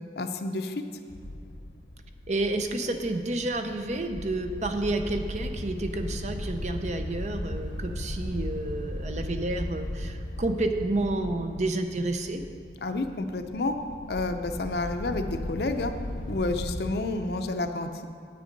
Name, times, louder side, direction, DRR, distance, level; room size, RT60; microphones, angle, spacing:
voice 1, 0.2-0.8 12.8-13.8 14.1-15.9 16.3-18.0, left 2 dB, 60° left, 7 dB, 0.6 m, -30 dB
sound 1, 1.1-16.9, left 1 dB, 85° left, 0.9 m, -37 dB
voice 2, 2.3-12.4, right 2 dB, 40° right, 6 dB, 0.6 m, -30 dB
9.2 x 8.4 x 5.2 m, 2.3 s
head